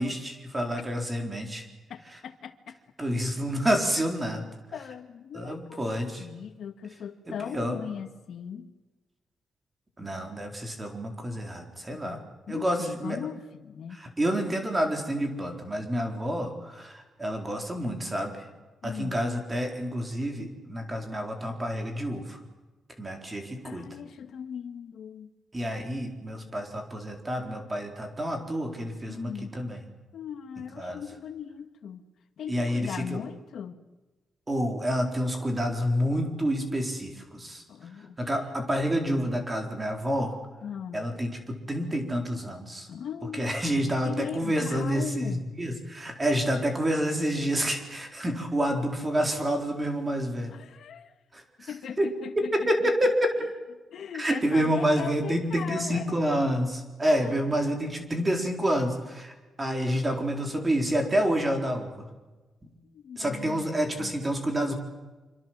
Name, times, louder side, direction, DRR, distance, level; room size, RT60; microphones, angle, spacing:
voice 1, 0.0-1.7 3.0-4.5 5.3-6.3 7.3-7.8 10.0-12.2 12.5-13.2 13.9-18.4 18.8-22.4 23.0-23.9 25.5-29.8 30.8-31.0 32.5-33.2 34.5-37.6 38.2-40.4 40.9-42.9 43.4-50.5 51.3-51.7 52.0-52.1 52.5-53.3 54.1-62.1 63.2-64.7, equal, 15° right, 4 dB, 4.2 m, -28 dB
voice 2, 1.9-2.8 4.7-5.8 6.2-8.7 12.0-14.0 18.8-19.2 23.6-25.3 29.1-29.6 30.1-32.0 32.4-33.8 37.7-38.3 40.6-41.0 42.9-43.6 44.0-45.5 50.5-51.1 51.7-52.9 53.9-56.2 57.2-57.6 57.8-58.0 62.9-63.7 64.0-64.1, left 8 dB, 65° left, 8 dB, 2.0 m, -39 dB
26.5 x 25.5 x 7.6 m, 1.2 s
wide cardioid pair, 155°, 0 cm